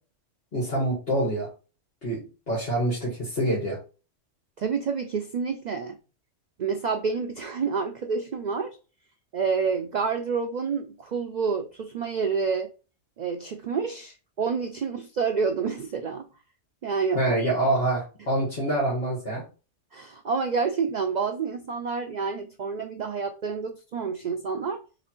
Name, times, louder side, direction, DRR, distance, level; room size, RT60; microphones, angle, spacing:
voice 1, 0.5-1.5 2.0-2.2 2.5-3.8 17.1-19.4, right 1 dB, 50° left, 1.6 m, -26 dB
voice 2, 4.6-6.0 6.6-8.8 9.3-12.7 13.2-16.3 16.8-17.3 19.9-24.8, right 5 dB, 85° right, 0.4 m, -28 dB
3.3 x 3.0 x 4.3 m
omnidirectional pair, 1.3 m